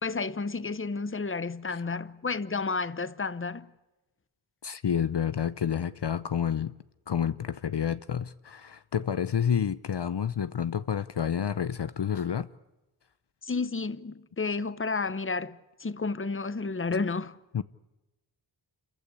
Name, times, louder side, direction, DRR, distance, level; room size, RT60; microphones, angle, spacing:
voice 1, 0.0-3.7 13.4-17.4, left 4 dB, 25° left, 0.9 m, -31 dB
voice 2, 4.6-6.7 7.1-12.5 16.9-17.0 17.5-17.6, left 8 dB, 55° left, 0.7 m, -29 dB
28.0 x 15.0 x 9.9 m
cardioid pair, 45°, 49 cm